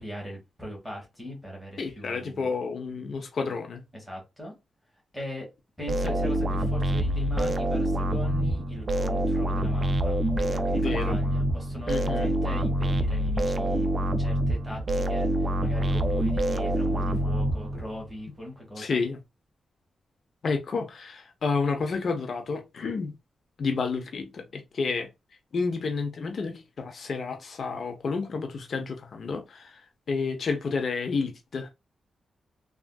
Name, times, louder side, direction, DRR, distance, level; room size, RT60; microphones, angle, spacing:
voice 1, 0.0-2.5 3.9-4.5 5.1-5.5 5.8-13.9 14.2-19.0, left 1 dB, 5° right, 1.2 m, -40 dB
voice 2, 1.8-3.8 10.7-11.2 11.9-12.3 18.8-19.2 20.4-23.1 23.6-25.1 25.5-31.7, left 4 dB, 55° left, 0.5 m, -30 dB
sound 1, 5.9-18.1, right 1 dB, 30° right, 0.3 m, -26 dB
3.4 x 2.4 x 2.2 m
wide cardioid pair, 120°, 0 cm